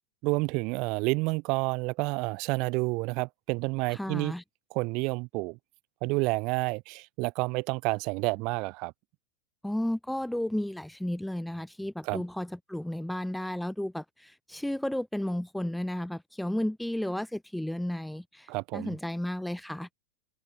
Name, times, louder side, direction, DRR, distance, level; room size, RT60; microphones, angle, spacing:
voice 1, 0.2-4.3 4.7-5.6 6.0-8.9 12.0-12.2 18.5-18.9, right 27 dB, 40° right, 4.5 m, -29 dB
voice 2, 3.9-4.4 9.6-19.9, left 1 dB, ahead, 1.5 m, -33 dB
figure-of-eight pair, 90°, 0 cm